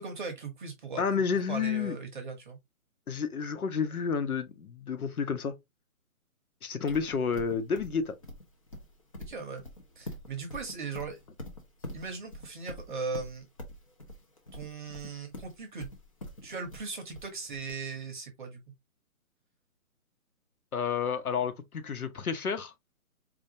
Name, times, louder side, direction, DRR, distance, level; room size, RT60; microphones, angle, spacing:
voice 1, 0.0-1.0 1.5-2.6 9.3-9.6 10.0-11.2 11.9-13.5 14.5-15.9 16.4-18.6, right 4 dB, 35° right, 0.8 m, -38 dB
voice 2, 1.0-2.0 3.1-5.5 6.6-8.2 20.7-22.7, left 6 dB, 80° left, 1.0 m, -30 dB
Livestock farm animals working animals, 6.9-17.7, left 1 dB, 25° left, 0.5 m, -44 dB
4.4 x 2.4 x 2.7 m
hypercardioid pair, 155°, 43 cm